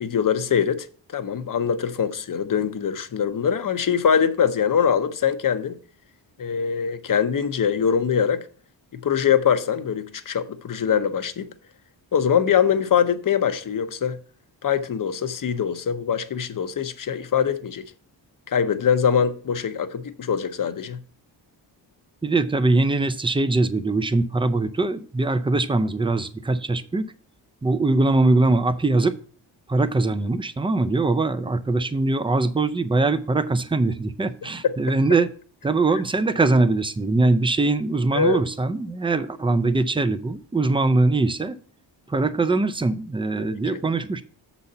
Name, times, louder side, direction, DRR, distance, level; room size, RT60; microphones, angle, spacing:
voice 1, 0.0-0.9 1.1-5.8 6.4-8.4 8.9-11.5 12.1-14.2 14.6-17.9 18.5-21.0 34.6-34.7 38.1-38.4 43.4-43.8, left 7 dB, 50° left, 0.8 m, -23 dB
voice 2, 22.2-27.0 27.6-29.2 29.7-35.3 35.6-41.6 42.1-44.2, right 3 dB, 10° right, 0.5 m, -22 dB
7.0 x 4.1 x 6.6 m
cardioid pair, 95°, 43 cm